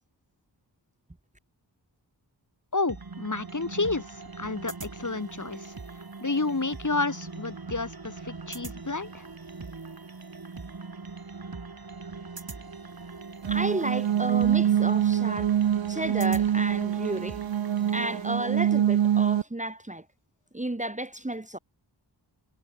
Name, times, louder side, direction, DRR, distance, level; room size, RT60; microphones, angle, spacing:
voice 1, 2.7-5.7 6.2-9.2, left 3 dB, 40° left, 3.2 m, -30 dB
sound 1, 2.9-18.3, right 4 dB, 50° right, 3.7 m, -41 dB
sound 2, 13.4-19.4, right 10 dB, 80° right, 0.7 m, -25 dB
voice 2, 13.5-15.5 15.9-17.4 17.9-20.0 20.5-21.6, right 1 dB, 15° right, 1.7 m, -32 dB
cardioid pair, 45°, 44 cm